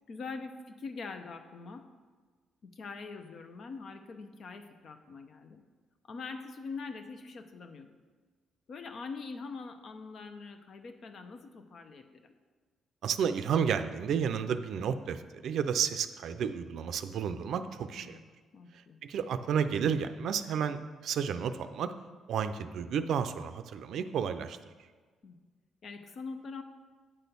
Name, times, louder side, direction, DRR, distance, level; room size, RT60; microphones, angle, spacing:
voice 1, 0.1-1.9 2.6-5.6 6.1-7.9 8.7-12.3 18.0-18.2 18.5-19.0 25.2-25.4 25.8-26.6, left 4 dB, 55° left, 7 dB, 0.7 m, -43 dB
voice 2, 13.0-18.2 18.7-21.9 22.3-24.6, right 7 dB, 70° right, 10 dB, 0.4 m, -31 dB
8.7 x 4.2 x 6.8 m, 1.4 s
cardioid pair, 90°, 0 cm